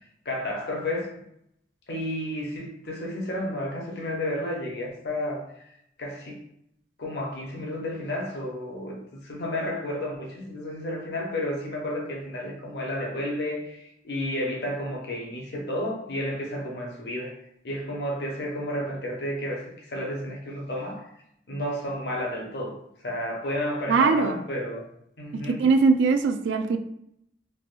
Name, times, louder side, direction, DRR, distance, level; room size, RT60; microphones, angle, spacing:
voice 1, 0.2-1.1 1.9-5.6 6.0-6.4 7.0-17.3 17.6-21.1 21.5-22.8 23.0-24.8 25.2-25.6, left 1 dB, 65° left, -1 dB, 0.7 m, -31 dB
voice 2, 23.9-24.4 25.5-26.8, right 4 dB, 90° right, 6 dB, 0.3 m, -21 dB
3.3 x 2.2 x 2.4 m, 0.73 s
head